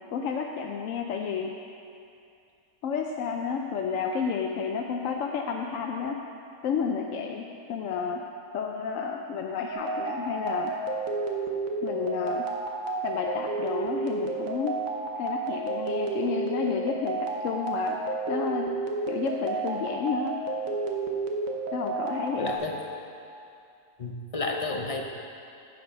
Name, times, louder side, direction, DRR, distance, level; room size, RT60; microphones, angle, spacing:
voice 1, 0.1-1.5 2.8-6.2 6.6-8.2 8.5-10.7 11.8-12.4 13.0-14.7 15.2-18.0 18.3-18.7 19.1-20.4 21.7-22.6, left 6 dB, 70° left, 2 dB, 0.9 m, -31 dB
sound 1, 9.7-22.6, right 3 dB, 70° right, 1.4 m, -31 dB
voice 2, 22.4-22.8 24.0-25.0, left 2 dB, 30° left, 1 dB, 0.8 m, -31 dB
9.4 x 8.2 x 5.5 m, 2.5 s
omnidirectional pair, 1.5 m